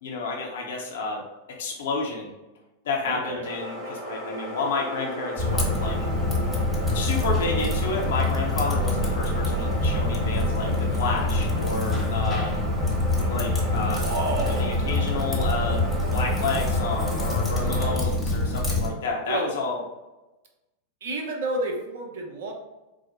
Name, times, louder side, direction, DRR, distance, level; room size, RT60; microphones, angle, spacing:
voice 1, 0.0-1.2 1.6-2.3 2.8-6.0 6.9-12.6 13.2-14.1 14.4-15.8 16.1-19.8, left 3 dB, 60° left, -1 dB, 0.7 m, -30 dB
voice 2, 3.1-3.5 14.0-14.8 19.3-19.5 21.0-22.5, right 2 dB, 55° right, 1 dB, 0.8 m, -30 dB
sound 1, 3.4-18.0, equal, 35° right, 1.1 m, -35 dB
Typing, 5.4-18.9, left 1 dB, ahead, 1.2 m, -25 dB
4.5 x 2.0 x 4.4 m, 1.0 s
figure-of-eight pair, 90°, 0 cm